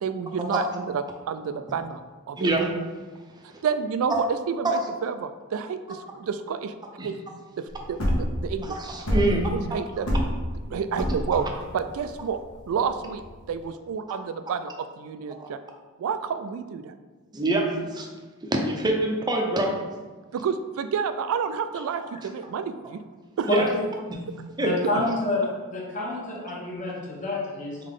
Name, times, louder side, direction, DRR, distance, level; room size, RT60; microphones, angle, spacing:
voice 1, 0.0-2.0 2.3-2.5 3.6-6.7 7.0-7.2 7.6-8.0 8.4-8.8 9.3-10.1 10.7-11.5 11.7-12.4 12.7-15.6 16.0-16.9 20.3-23.0 23.4-23.5, right 6 dB, 65° right, 11 dB, 0.3 m, -29 dB
voice 2, 2.4-2.8 3.5-3.6 4.1-4.2 7.0-7.1 8.7-9.5 11.3-11.4 14.1-14.2 15.4-15.5 17.3-18.1 18.4-19.8 23.4-23.7 24.1-24.2 24.6-24.7, right 1 dB, 20° right, 1 dB, 0.5 m, -25 dB
sound 1, 7.7-13.6, equal, 75° left, 1.1 m, -27 dB
voice 3, 23.5-23.8 24.6-27.8, left 2 dB, 35° left, -3 dB, 1.0 m, -28 dB
3.7 x 3.6 x 3.7 m, 1.3 s
head